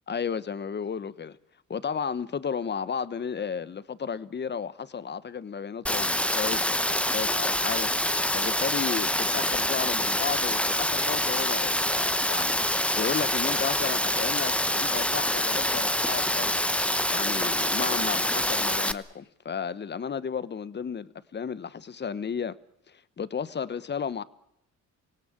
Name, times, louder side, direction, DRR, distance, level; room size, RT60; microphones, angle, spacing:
voice 1, 0.1-1.4 1.7-7.9 8.3-16.6 17.1-22.5 22.9-24.2, left 6 dB, 35° left, 1.1 m, -33 dB
Rain, 5.9-18.9, left 1 dB, 5° left, 1.0 m, -26 dB
26.0 x 17.5 x 8.8 m
cardioid pair, 90°, 30 cm